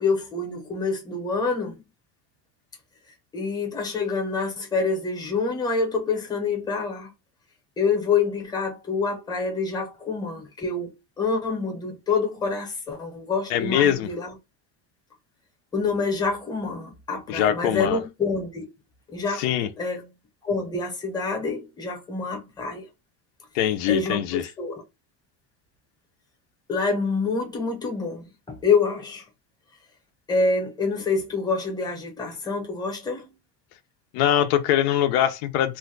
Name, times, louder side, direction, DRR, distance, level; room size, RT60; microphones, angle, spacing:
voice 1, 0.0-1.8 3.3-7.1 7.8-14.3 15.7-18.7 19.1-19.4 19.8-20.1 20.4-22.9 23.9-24.8 26.7-29.2 30.3-33.3, left 4 dB, 10° left, 0.7 m, -26 dB
voice 2, 13.5-14.1 17.3-18.0 19.3-19.7 23.5-24.4 34.1-35.8, left 11 dB, 75° left, 0.6 m, -22 dB
2.5 x 2.2 x 3.7 m
cardioid pair, 155°, 44 cm